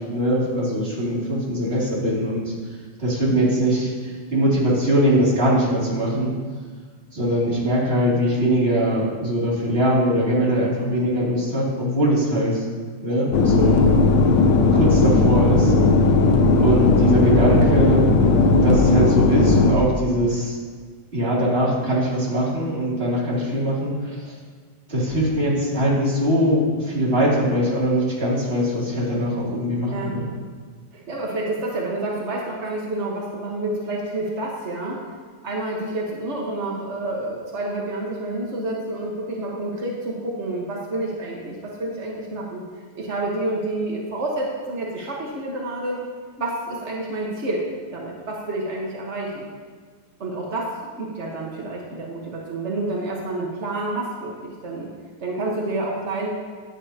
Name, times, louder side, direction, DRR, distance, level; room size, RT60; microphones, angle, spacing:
voice 1, 0.0-2.5 3.0-6.3 7.1-12.6 13.0-13.9 14.7-15.7 16.6-18.0 18.5-20.5 21.1-24.3 24.9-30.3, equal, 20° right, -6 dB, 2.7 m, -21 dB
sound 1, 13.3-19.7, left 3 dB, 85° left, 1.2 m, -16 dB
voice 2, 15.8-16.1 29.9-30.1 30.9-35.0 35.4-42.6 42.9-46.0 46.4-47.7 47.9-49.5 50.2-50.7 51.0-54.9 55.2-56.3, right 2 dB, 75° right, -3 dB, 0.6 m, -29 dB
13.5 x 9.3 x 2.9 m, 1.6 s
omnidirectional pair, 3.5 m